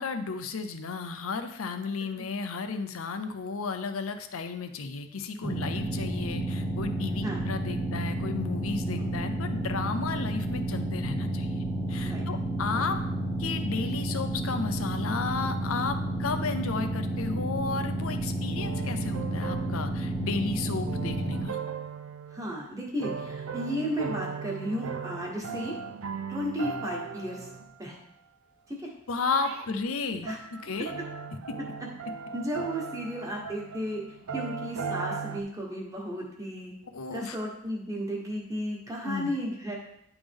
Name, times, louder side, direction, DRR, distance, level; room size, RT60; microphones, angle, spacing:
voice 1, 0.0-11.6 11.9-13.0 13.4-21.6 29.1-30.9 36.9-37.4 39.0-39.3, left 4 dB, 75° left, 8 dB, 0.6 m, -33 dB
sound 1, 5.4-21.4, right 1 dB, 10° left, 0.9 m, -31 dB
sound 2, 18.6-22.6 23.0-27.8 29.1-29.7 30.3-35.4, right 5 dB, 75° right, 0.5 m, -38 dB
voice 2, 22.3-25.7 26.3-27.5 27.8-27.9 28.7-28.9 29.7-29.8 30.2-30.4 31.0-31.1 32.3-34.0 34.3-36.7 37.1-39.7, equal, 15° right, -3 dB, 1.3 m, -34 dB
10.0 x 3.6 x 3.5 m, 0.77 s
head